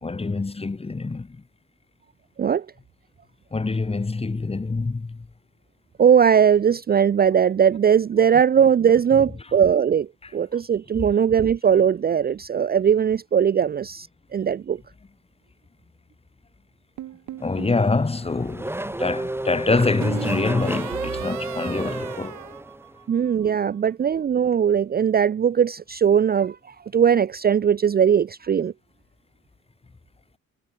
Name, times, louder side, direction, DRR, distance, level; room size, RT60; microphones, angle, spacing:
voice 1, 0.0-1.4 3.5-5.3 17.4-22.4, left 3 dB, 20° left, 1.6 m, -25 dB
voice 2, 6.0-10.1 10.3-14.1 14.3-14.8 23.1-28.7, right 8 dB, 30° right, 0.5 m, -19 dB
sound 1, 17.0-17.8 19.7-23.3, right 13 dB, 75° right, 2.4 m, -36 dB
Race car auto racing / Accelerating revving vroom, 17.4-23.0, right 1 dB, 10° right, 2.0 m, -32 dB
cardioid pair, 90°, 30 cm